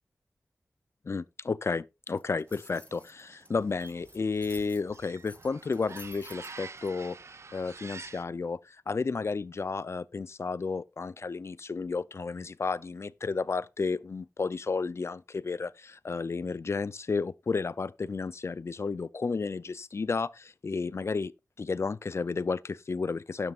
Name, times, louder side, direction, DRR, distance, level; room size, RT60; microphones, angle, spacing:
voice 1, 1.0-7.2 7.5-21.3 21.6-23.5, left 4 dB, 55° left, 0.5 m, -32 dB
sound 1, 2.1-6.9, left 2 dB, 25° left, 1.3 m, -53 dB
sound 2, 2.5-8.2, right 4 dB, 60° right, 0.7 m, -48 dB
11.5 x 11.0 x 2.5 m
wide cardioid pair, 80°, 5 cm